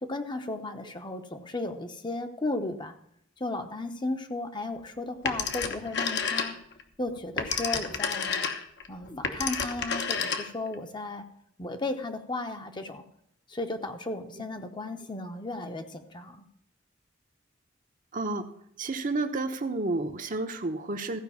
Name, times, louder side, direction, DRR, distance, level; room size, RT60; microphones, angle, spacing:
voice 1, 0.0-2.9 3.4-6.6 7.0-8.4 8.9-11.3 11.6-13.0 13.5-16.4, left 2 dB, 25° left, 6 dB, 0.9 m, -35 dB
Telephone, 5.3-6.8 7.2-10.7, left 6 dB, 60° left, 1.1 m, -30 dB
voice 2, 18.1-18.4 18.8-21.2, right 2 dB, 45° right, 6 dB, 1.0 m, -30 dB
15.0 x 5.2 x 7.1 m, 0.71 s
head